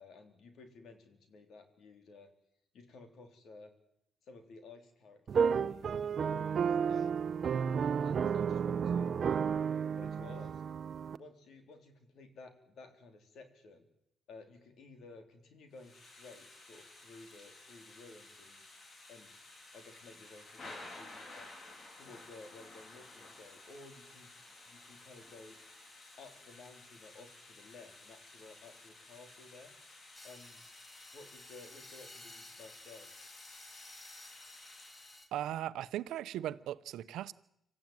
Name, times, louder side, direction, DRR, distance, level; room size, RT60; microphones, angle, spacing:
voice 1, 0.0-2.3 2.7-3.7 4.2-7.2 8.0-9.4 9.9-10.6 11.2-13.9 14.3-18.6 19.1-19.3 19.7-21.5 22.0-24.3 24.7-25.6 26.2-29.7 30.2-30.6 31.1-33.1, left 3 dB, 70° left, 4.0 m, -54 dB
sound 1, 5.3-11.2, right 7 dB, 50° right, 0.9 m, -32 dB
Thunder / Rain, 15.7-35.2, left 2 dB, 45° left, 3.9 m, -54 dB
sound 2, 30.1-35.3, left 2 dB, 30° left, 2.9 m, -54 dB
voice 2, 35.3-37.3, right 12 dB, 85° right, 0.8 m, -38 dB
26.0 x 14.5 x 9.4 m
cardioid pair, 90°, 0 cm